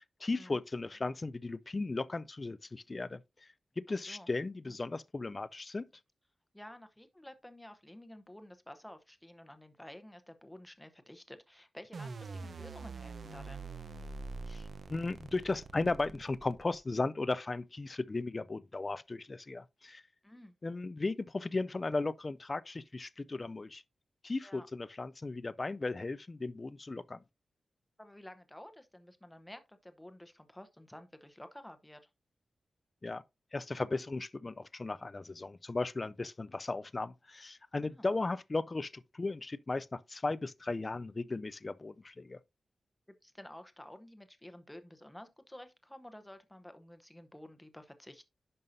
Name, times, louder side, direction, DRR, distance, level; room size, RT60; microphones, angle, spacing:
voice 1, 0.0-3.2 3.8-5.9 14.5-14.6 14.9-20.0 20.6-23.8 24.2-27.2 33.0-33.2 33.5-42.4, left 3 dB, 25° left, 0.3 m, -36 dB
voice 2, 3.9-4.3 6.5-13.7 20.2-20.6 24.4-24.7 28.0-32.1 37.8-38.0 43.2-48.2, left 1 dB, 5° left, 0.7 m, -52 dB
sound 1, 11.9-17.0, right 3 dB, 55° right, 0.7 m, -44 dB
10.5 x 5.5 x 2.6 m
wide cardioid pair, 165°, 0 cm